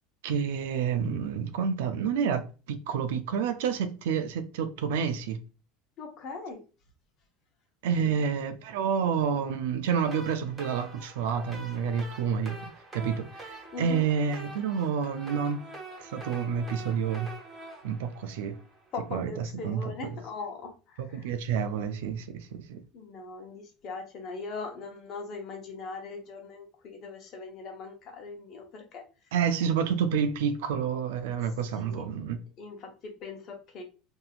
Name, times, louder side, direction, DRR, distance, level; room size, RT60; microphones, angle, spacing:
voice 1, 0.2-5.4 7.8-15.6 16.0-17.3 17.8-18.6 19.1-19.3 19.6-20.2 21.0-22.8 29.3-32.4, right 7 dB, 80° right, 0.4 m, -29 dB
voice 2, 6.0-6.6 8.0-8.2 13.7-14.1 18.9-21.3 22.9-29.0 31.8-32.0 32.6-33.8, left 3 dB, 50° left, 0.8 m, -40 dB
sound 1, 9.9-19.0, right 2 dB, 20° right, 1.1 m, -45 dB
2.7 x 2.7 x 2.3 m
supercardioid pair, 100°, 0 cm